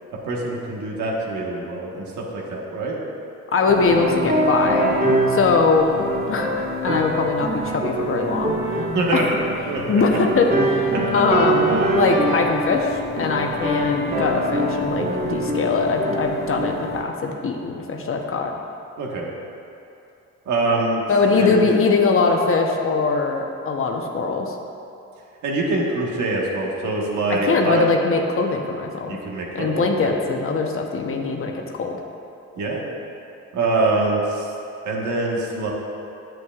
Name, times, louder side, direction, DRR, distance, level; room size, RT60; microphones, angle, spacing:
voice 1, 0.2-3.0 8.9-9.2 9.7-10.0 19.0-19.3 20.5-21.0 21.4-21.6 25.4-27.8 29.1-30.2 32.6-32.8 33.5-34.5 34.8-35.7, right 2 dB, 75° right, -2 dB, 1.4 m, -24 dB
voice 2, 3.5-4.9 5.3-5.9 6.3-9.3 9.9-18.5 21.1-24.5 27.3-29.2 29.5-32.0, left 4 dB, 45° left, 2 dB, 0.9 m, -22 dB
sound 1, 3.7-17.0, right 1 dB, 30° right, 1.8 m, -24 dB
9.7 x 7.7 x 2.4 m, 2.7 s
cardioid pair, 90°, 30 cm